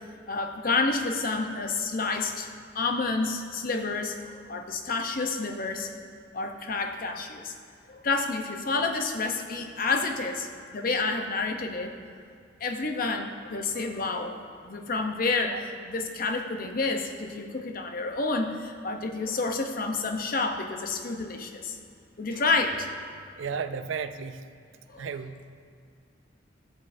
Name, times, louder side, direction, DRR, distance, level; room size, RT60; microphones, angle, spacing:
voice 1, 0.3-2.5 2.7-5.9 6.3-7.5 7.9-11.9 12.6-14.4 14.6-21.8 22.2-22.9 24.9-25.1, left 3 dB, 45° left, 5 dB, 0.7 m, -29 dB
voice 2, 23.4-24.4 25.0-25.4, right 6 dB, 80° right, 10 dB, 0.4 m, -34 dB
14.0 x 7.1 x 2.6 m, 2.4 s
head